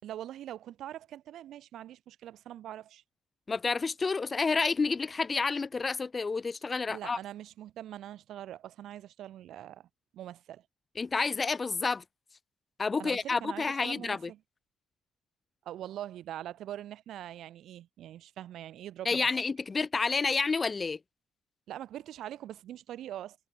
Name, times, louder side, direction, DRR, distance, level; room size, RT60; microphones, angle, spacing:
voice 1, 0.0-3.0 6.9-9.9 10.1-10.6 13.0-14.4 15.6-19.3 21.7-23.4, right 12 dB, 75° right, 3.2 m, -43 dB
voice 2, 3.5-7.2 11.0-12.0 12.8-14.3 19.0-21.0, left 4 dB, 30° left, 0.8 m, -29 dB
cardioid pair, 90°, 0 cm